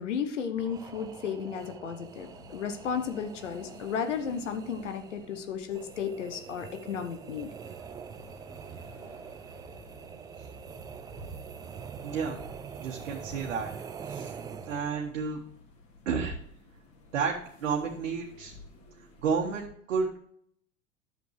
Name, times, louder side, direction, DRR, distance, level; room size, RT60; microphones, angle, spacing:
voice 1, 0.0-7.5, left 7 dB, 70° left, 7 dB, 1.1 m, -34 dB
sound 1, 0.6-15.1, right 7 dB, 10° right, 0.3 m, -44 dB
sound 2, 2.1-19.6, left 3 dB, 35° left, 2.8 m, -55 dB
voice 2, 12.0-12.4 12.8-13.7 14.0-14.3 14.6-15.4 16.0-16.4 17.1-18.5 19.2-20.1, right 5 dB, 65° right, 0 dB, 1.5 m, -31 dB
11.5 x 7.2 x 3.2 m, 0.64 s
figure-of-eight pair, 80°, 38 cm